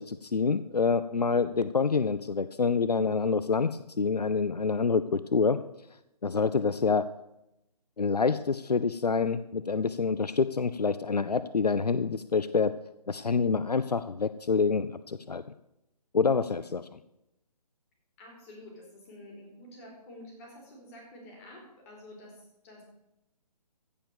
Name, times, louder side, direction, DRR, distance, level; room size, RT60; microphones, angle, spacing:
voice 1, 0.0-5.6 6.2-7.1 8.0-12.7 13.1-15.4 16.1-16.9, left 5 dB, 75° left, 14 dB, 0.5 m, -27 dB
voice 2, 16.3-16.7 18.2-22.8, left 1 dB, 20° left, -1 dB, 3.7 m, -50 dB
15.5 x 5.3 x 6.9 m, 0.87 s
figure-of-eight pair, 140°, 21 cm